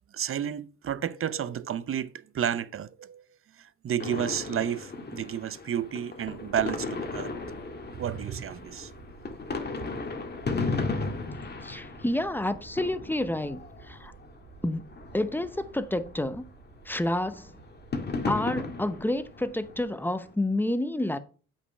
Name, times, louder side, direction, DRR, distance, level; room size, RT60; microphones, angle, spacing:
voice 1, 0.1-3.3 3.6-7.5 7.9-8.9, right 9 dB, 45° right, 0.7 m, -31 dB
sound 1, 4.0-14.4 14.7-16.8 17.1-20.3, left 3 dB, 35° left, 1.9 m, -36 dB
sound 2, 6.2-19.8, right 5 dB, 80° right, 2.0 m, -52 dB
voice 2, 11.6-14.1 14.6-14.8 15.1-16.4 16.8-17.5 18.3-21.2, left 1 dB, 5° left, 0.8 m, -29 dB
8.2 x 5.7 x 5.5 m
cardioid pair, 90°, 30 cm